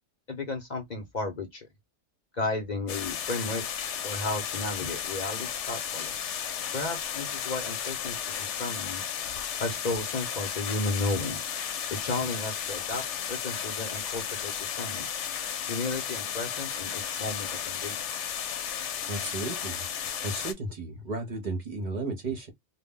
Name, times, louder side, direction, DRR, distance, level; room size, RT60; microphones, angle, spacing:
voice 1, 0.3-1.7 2.3-3.6 4.0-6.1 6.7-9.2 9.6-11.4 11.9-13.0 13.3-15.1 15.7-18.0, left 2 dB, 45° left, 0.7 m, -33 dB
sound 1, 2.9-20.5, left 8 dB, 85° left, 0.9 m, -34 dB
voice 2, 19.1-19.8 20.2-22.5, right 2 dB, 50° right, 0.7 m, -34 dB
2.2 x 2.1 x 3.5 m
omnidirectional pair, 1.2 m